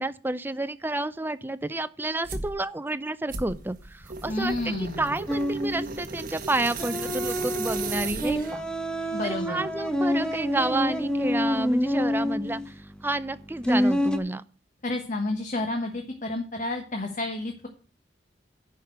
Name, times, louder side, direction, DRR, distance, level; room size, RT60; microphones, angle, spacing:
voice 1, 0.0-8.6 9.2-12.6 13.0-14.4, right 2 dB, 10° right, 12 dB, 0.5 m, -30 dB
sound 1, 2.2-2.5 3.3-8.7, right 4 dB, 50° right, 1.6 m, -36 dB
voice 2, 4.3-5.2 9.1-9.6 14.8-17.7, left 2 dB, 45° left, 4 dB, 1.3 m, -30 dB
sound 2, 5.3-14.2, equal, 5° left, 1.1 m, -27 dB
10.5 x 5.2 x 7.9 m, 0.39 s
head